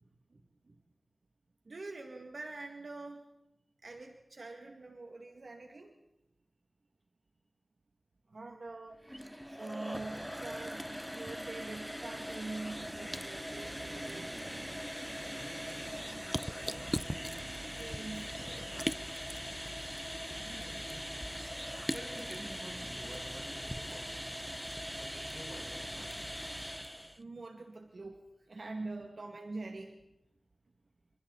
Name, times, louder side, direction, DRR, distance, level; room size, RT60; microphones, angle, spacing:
voice 1, 0.3-0.8 1.7-3.3 3.8-5.9 8.3-9.2 9.5-14.3 17.7-18.4 27.2-30.0, right 3 dB, 70° right, 3 dB, 2.1 m, -45 dB
sound 1, 8.9-27.2, equal, ahead, 0.8 m, -40 dB
sound 2, 12.7-19.2, right 3 dB, 90° right, 2.2 m, -52 dB
voice 2, 20.4-21.1 21.9-24.4 25.0-26.4, right 1 dB, 25° right, 0 dB, 7.5 m, -49 dB
29.0 x 26.5 x 4.1 m, 0.87 s
wide cardioid pair, 60°, 0 cm